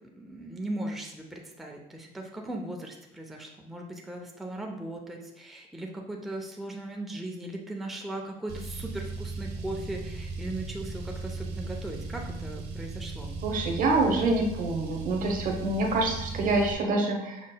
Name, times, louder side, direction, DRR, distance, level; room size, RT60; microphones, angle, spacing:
voice 1, 0.2-13.3, right 1 dB, ahead, 0 dB, 0.5 m, -38 dB
Car, 8.5-16.7, right 3 dB, 80° right, 0.7 m, -37 dB
voice 2, 13.4-17.4, right 2 dB, 55° right, 2 dB, 0.9 m, -26 dB
6.2 x 3.8 x 2.2 m, 0.89 s
cardioid pair, 110°, 17 cm